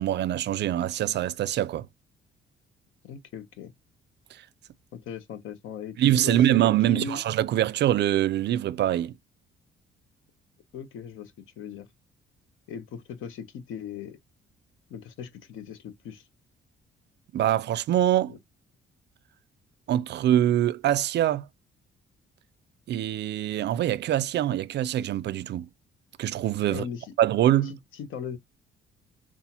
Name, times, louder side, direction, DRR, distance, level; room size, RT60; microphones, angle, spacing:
voice 1, 0.0-1.9 6.0-9.1 17.3-18.3 19.9-21.5 22.9-25.7 26.2-26.8 27.2-27.7, right 12 dB, 60° right, 0.4 m, -24 dB
voice 2, 3.0-3.7 4.9-6.0 6.2-6.6 6.9-7.2 10.7-11.9 12.7-14.2 14.9-16.3 18.3-18.4 26.7-27.1 27.6-28.4, left 7 dB, 80° left, 0.9 m, -39 dB
5.5 x 2.4 x 2.8 m
cardioid pair, 110°, 20 cm